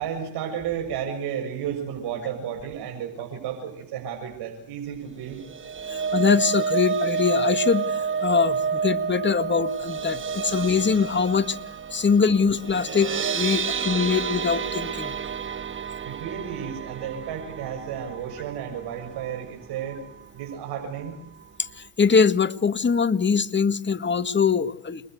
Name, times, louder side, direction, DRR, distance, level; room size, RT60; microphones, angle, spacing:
voice 1, 0.0-5.4 16.0-20.0 20.3-21.1, right 8 dB, 70° right, 2 dB, 7.3 m, -32 dB
sound 1, 5.3-19.5 19.9-20.1 20.4-20.5, right 6 dB, 30° right, 1.3 m, -30 dB
voice 2, 5.9-11.6 11.9-15.2 21.6-25.0, left 5 dB, 25° left, 10 dB, 2.0 m, -23 dB
29.5 x 22.0 x 8.1 m, 0.67 s
supercardioid pair, 80°, 41 cm